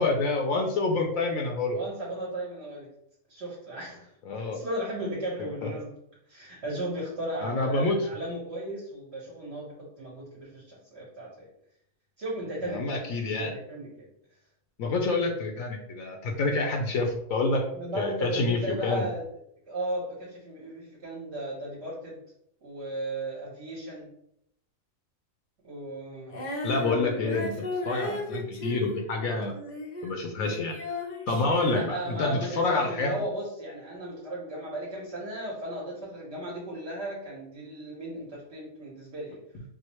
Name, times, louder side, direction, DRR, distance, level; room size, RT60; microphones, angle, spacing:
voice 1, 0.0-1.8 4.3-4.6 5.6-5.7 7.4-8.1 12.6-13.5 14.8-19.1 26.6-29.5 30.0-30.7 31.3-33.1, left 3 dB, 75° left, 2 dB, 1.0 m, -27 dB
voice 2, 1.7-2.9 3.3-4.1 4.5-5.9 6.3-11.5 12.2-14.0 17.7-19.2 19.7-22.2 22.6-24.1 25.6-26.4 31.7-39.4, right 1 dB, 55° right, -5 dB, 1.1 m, -36 dB
Female singing, 26.3-30.1 30.4-32.5, left 1 dB, 50° left, 0.5 m, -36 dB
4.7 x 2.1 x 2.9 m, 0.75 s
omnidirectional pair, 1.4 m